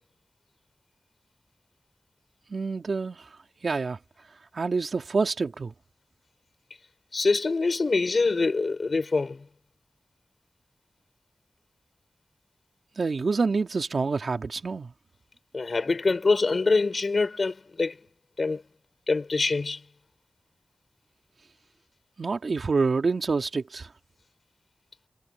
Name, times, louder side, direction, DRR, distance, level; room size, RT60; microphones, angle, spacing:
voice 1, 2.5-3.3 3.6-4.0 4.5-5.7 13.0-14.9 22.2-23.9, right 4 dB, 75° right, 3.2 m, -27 dB
voice 2, 7.1-9.5 15.5-18.0 18.4-18.6 19.1-19.8, left 3 dB, 65° left, 7.7 m, -25 dB
wide cardioid pair, 55°, 0 cm